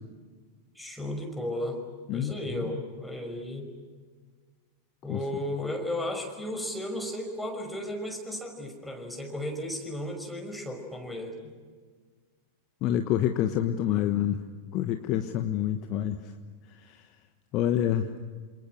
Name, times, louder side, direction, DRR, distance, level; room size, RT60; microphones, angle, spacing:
voice 1, 0.7-1.8 2.1-3.7 5.0-11.5, left 1 dB, ahead, 2 dB, 5.9 m, -34 dB
voice 2, 2.1-2.8 5.1-5.2 12.8-14.4 14.7-16.3 16.7-17.0 17.5-18.1, left 11 dB, 40° left, 7 dB, 1.2 m, -27 dB
28.0 x 28.0 x 6.4 m, 1.6 s
figure-of-eight pair, 90°, 0 cm